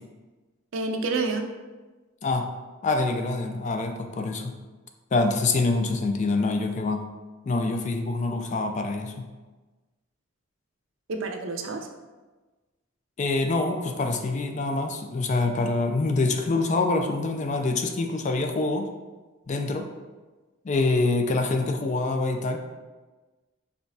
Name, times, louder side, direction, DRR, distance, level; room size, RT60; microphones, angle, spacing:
voice 1, 0.7-1.5 11.1-11.9, right 3 dB, 70° right, 5 dB, 0.5 m, -28 dB
voice 2, 2.8-4.6 5.1-7.0 7.5-9.3 13.2-18.9 19.5-19.9 20.6-22.6, left 3 dB, 35° left, 5 dB, 0.4 m, -25 dB
4.8 x 3.5 x 2.7 m, 1.2 s
head